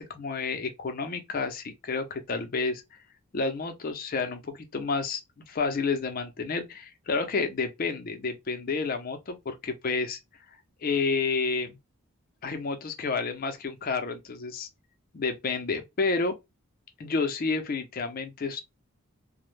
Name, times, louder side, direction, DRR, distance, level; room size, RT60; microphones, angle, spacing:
voice 1, 0.0-2.8 3.3-5.2 5.5-10.2 10.8-11.8 12.4-14.7 15.1-16.3 17.0-18.6, left 4 dB, 40° left, 0.5 m, -30 dB
2.1 x 2.0 x 3.0 m
head